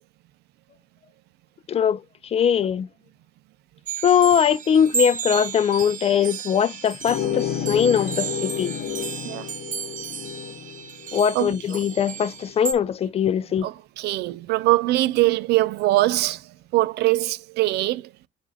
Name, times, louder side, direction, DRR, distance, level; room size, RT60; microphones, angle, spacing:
voice 1, 1.7-2.9 4.0-8.8 11.1-13.7, left 8 dB, 35° left, 0.4 m, -21 dB
sound 1, 3.9-12.7, right 7 dB, 50° right, 1.4 m, -33 dB
sound 2, 7.0-12.3, left 9 dB, 80° left, 1.2 m, -31 dB
voice 2, 13.6-16.4 16.7-18.0, right 17 dB, 75° right, 0.5 m, -22 dB
7.5 x 2.6 x 4.8 m
cardioid pair, 110°, 17 cm